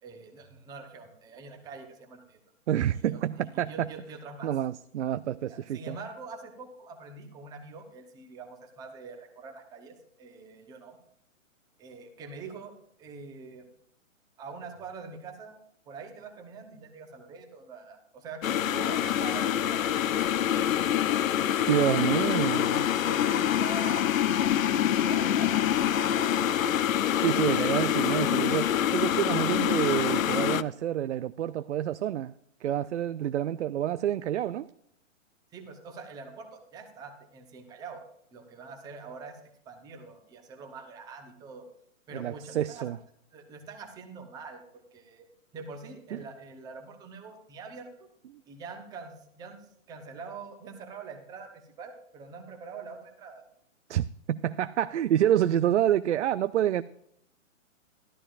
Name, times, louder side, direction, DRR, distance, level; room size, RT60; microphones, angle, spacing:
voice 1, 0.0-2.4 2.9-4.5 5.4-11.0 11.8-12.7 13.0-13.7 14.4-15.6 15.9-20.1 21.1-21.3 21.7-22.3 23.0-26.7 35.5-38.0 38.3-39.4 39.7-41.7 42.1-42.9 43.3-45.2 45.5-48.1 48.5-49.6 49.9-53.4, right 4 dB, 10° right, 0.9 m, -44 dB
voice 2, 2.7-3.9 4.4-6.0 21.7-22.9 27.0-32.3 32.6-34.7 42.1-43.0 46.1-46.2 48.3-48.4 53.9-56.8, right 11 dB, 60° right, 0.5 m, -28 dB
sound 1, 18.4-30.6, left 10 dB, 80° left, 0.7 m, -26 dB
13.5 x 12.0 x 2.5 m
hypercardioid pair, 155°, 40 cm